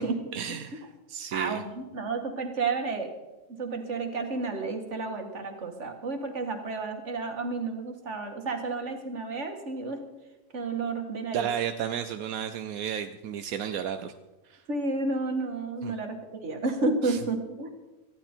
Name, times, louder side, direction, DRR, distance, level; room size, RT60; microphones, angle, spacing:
voice 1, 0.3-1.6 11.3-14.1 14.4-14.6 15.8-16.0 17.0-17.2, right 9 dB, 85° right, 9 dB, 1.2 m, -33 dB
voice 2, 1.3-3.1 3.6-10.0 10.5-11.5 14.7-17.7, right 3 dB, 55° right, 5 dB, 2.2 m, -31 dB
19.0 x 14.0 x 4.5 m, 1.1 s
omnidirectional pair, 1.5 m